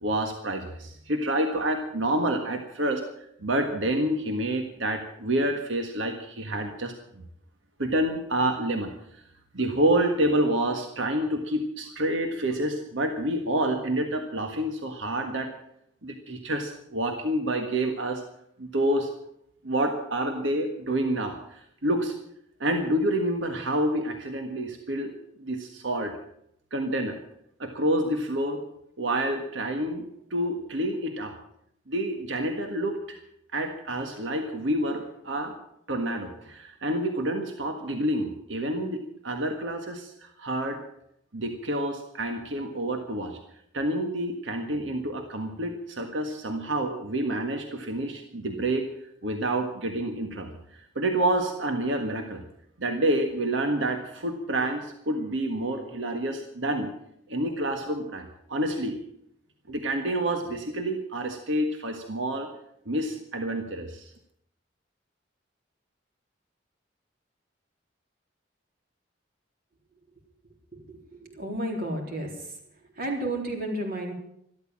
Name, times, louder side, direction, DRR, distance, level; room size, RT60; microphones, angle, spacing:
voice 1, 0.0-3.0 3.4-7.2 7.8-8.9 9.5-15.5 16.0-18.2 18.6-19.1 19.6-22.1 22.6-25.1 25.4-26.1 26.7-27.2 27.6-28.6 29.0-31.3 31.9-33.2 33.5-35.5 35.9-40.8 41.3-43.4 43.7-48.9 49.2-52.4 52.8-56.9 57.3-59.0 59.7-62.5 62.8-64.1, right 1 dB, 85° right, 5 dB, 1.6 m, -28 dB
voice 2, 70.7-72.5 73.0-74.1, right 1 dB, 50° right, 1 dB, 3.9 m, -32 dB
13.5 x 13.0 x 7.4 m, 0.74 s
head